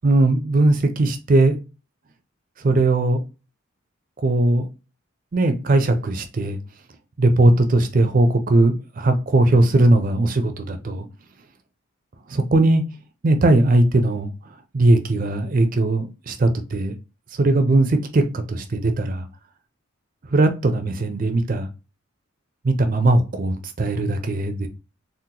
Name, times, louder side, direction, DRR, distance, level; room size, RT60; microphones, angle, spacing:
voice 1, 0.0-1.6 2.6-3.2 4.2-4.7 5.3-6.6 7.2-11.1 12.3-12.8 13.2-14.3 14.7-16.9 17.3-19.3 20.3-21.7 22.6-24.7, right 2 dB, 40° right, 0.4 m, -19 dB
3.7 x 2.0 x 2.8 m
head